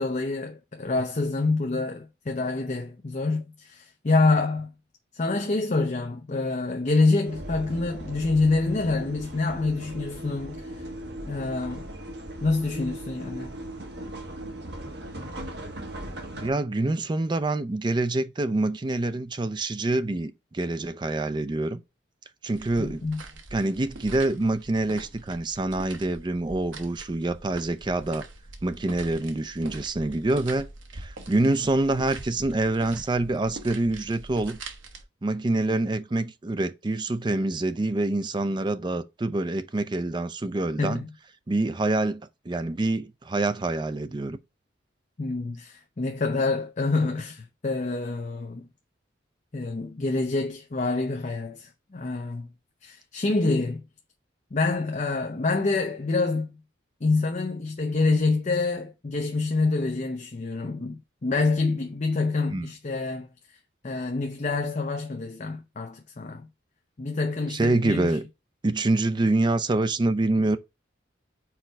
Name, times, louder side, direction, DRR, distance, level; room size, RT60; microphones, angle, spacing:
voice 1, 0.0-4.7 5.1-10.8 11.3-11.8 12.4-13.5 22.8-23.2 40.8-41.1 45.2-48.7 49.5-52.5 52.8-53.8 54.5-56.6 57.0-63.3 63.8-66.5 67.0-68.2, left 3 dB, 40° left, 0.6 m, -26 dB
sound 1, 7.2-16.5, right 1 dB, 60° right, 1.2 m, -38 dB
voice 2, 16.4-21.8 22.4-23.0 23.5-28.3 28.6-30.7 30.9-34.6 35.2-41.0 41.5-42.2 42.5-44.4 62.5-62.7 67.5-68.2 68.6-70.6, right 2 dB, 25° right, 0.4 m, -26 dB
sound 2, 22.5-35.0, right 2 dB, 85° right, 1.0 m, -43 dB
4.7 x 4.4 x 4.5 m
head